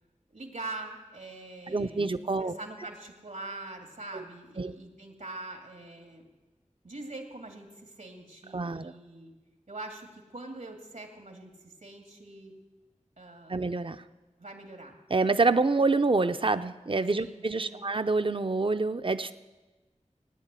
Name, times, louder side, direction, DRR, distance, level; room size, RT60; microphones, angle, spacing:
voice 1, 0.3-6.3 6.8-9.3 9.7-12.5 13.2-13.6 14.4-15.0 17.1-17.8, right 2 dB, 80° right, 2 dB, 2.3 m, -43 dB
voice 2, 1.7-2.5 4.1-4.2 4.6-4.7 8.5-8.9 13.5-14.0 15.1-19.3, right 3 dB, 45° right, 10 dB, 0.6 m, -27 dB
17.5 x 10.0 x 8.2 m, 1.2 s
wide cardioid pair, 50°, 13 cm